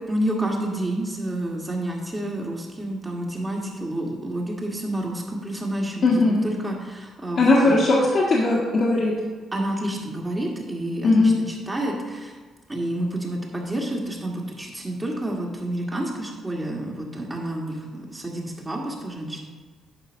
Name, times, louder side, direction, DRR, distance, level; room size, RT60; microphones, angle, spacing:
voice 1, 0.1-7.8 9.5-12.4 12.7-19.4, right 1 dB, 20° right, -2 dB, 1.7 m, -29 dB
voice 2, 6.0-6.4 7.4-9.1 11.0-11.4, left 2 dB, 55° left, -5 dB, 1.6 m, -18 dB
9.7 x 3.9 x 6.3 m, 1.4 s
cardioid pair, 90°, 0 cm